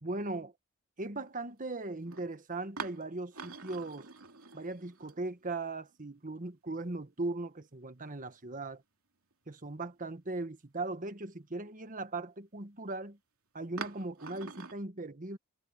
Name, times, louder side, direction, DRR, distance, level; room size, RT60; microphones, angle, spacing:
voice 1, 0.0-0.5 1.0-4.1 4.5-8.8 9.5-13.2 13.5-15.4, right 2 dB, 40° right, 1.5 m, -38 dB
sound 1, 1.3-1.4 2.0-2.3 2.8-5.7 5.9-6.0 7.5-8.1 8.6-8.7 9.3-9.4 13.8-14.7, right 5 dB, 80° right, 2.9 m, -45 dB
head